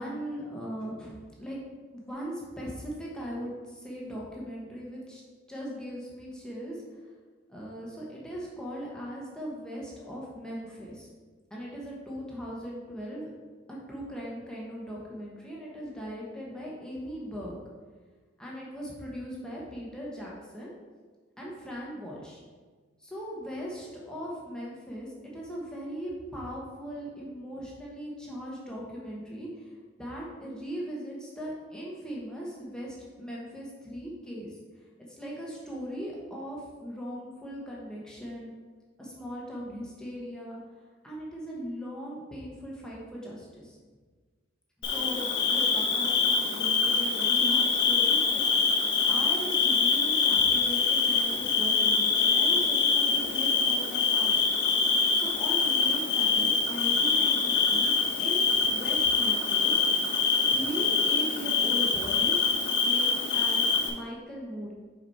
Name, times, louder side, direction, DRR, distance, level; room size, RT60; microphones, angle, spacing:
voice 1, 0.0-1.6 1.9-5.2 5.5-6.8 7.5-11.1 11.5-13.3 13.7-17.6 18.4-20.7 21.4-22.4 23.0-29.7 30.0-34.6 35.1-38.5 39.0-40.6 41.0-43.8 44.8-48.4 49.0-54.6 55.1-59.8 60.5-62.5 62.8-64.7, equal, 5° left, -5 dB, 1.2 m, -39 dB
Bird / Cricket, 44.8-63.9, left 5 dB, 60° left, 1.0 m, -25 dB
6.0 x 5.1 x 4.2 m, 1.4 s
head